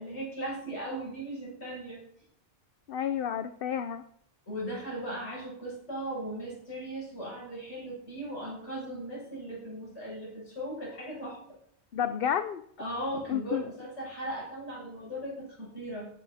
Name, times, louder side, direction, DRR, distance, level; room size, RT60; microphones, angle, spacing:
voice 1, 0.0-2.0 4.5-11.4 12.8-16.1, right 1 dB, 90° left, -3 dB, 8.2 m, -37 dB
voice 2, 2.9-4.0 11.9-12.6 13.3-13.7, left 9 dB, 60° left, 10 dB, 0.9 m, -30 dB
18.0 x 11.0 x 4.3 m, 0.69 s
omnidirectional pair, 1.1 m